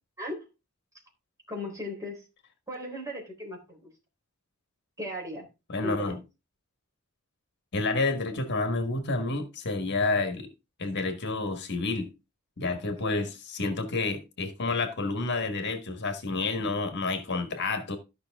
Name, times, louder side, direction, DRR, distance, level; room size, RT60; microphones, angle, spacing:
voice 1, 1.5-2.2 2.7-3.9 5.0-5.5 5.8-6.2 13.0-13.3, left 1 dB, 15° right, 3.8 m, -37 dB
voice 2, 5.7-6.2 7.7-10.5 10.8-12.1 12.6-18.0, left 3 dB, 50° left, 1.5 m, -29 dB
13.5 x 5.6 x 3.6 m
head